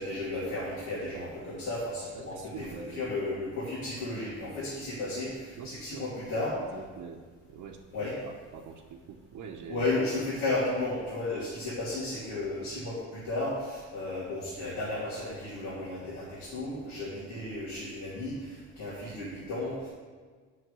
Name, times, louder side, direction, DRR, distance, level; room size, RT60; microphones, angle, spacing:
voice 1, 0.0-6.6 7.9-8.1 9.7-19.9, left 2 dB, 85° left, -9 dB, 2.9 m, -34 dB
voice 2, 2.1-3.1 5.5-9.9, right 6 dB, 75° right, -1 dB, 0.9 m, -45 dB
7.8 x 6.6 x 6.6 m, 1.6 s
cardioid pair, 90°, 30 cm